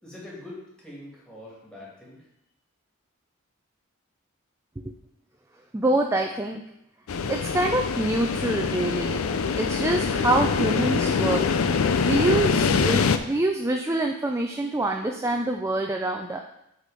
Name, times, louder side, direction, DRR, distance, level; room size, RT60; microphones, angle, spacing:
voice 1, 0.0-2.3, left 1 dB, 5° left, -6 dB, 2.5 m, -43 dB
voice 2, 5.7-6.6 7.3-9.3 9.5-11.5 12.1-16.4, right 1 dB, 15° right, 3 dB, 0.4 m, -25 dB
sound 1, 7.1-13.2, left 5 dB, 85° left, 0.5 m, -24 dB
8.1 x 4.2 x 5.1 m, 0.81 s
head